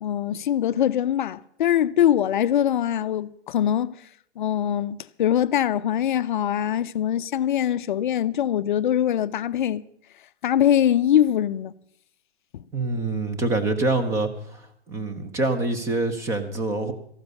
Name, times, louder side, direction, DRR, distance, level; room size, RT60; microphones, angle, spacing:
voice 1, 0.0-3.9 4.4-9.8 10.4-11.7, left 10 dB, 45° left, 0.6 m, -22 dB
voice 2, 12.7-14.6 14.9-16.9, right 2 dB, 10° right, 0.8 m, -25 dB
14.0 x 12.0 x 6.6 m
hypercardioid pair, 155°, 34 cm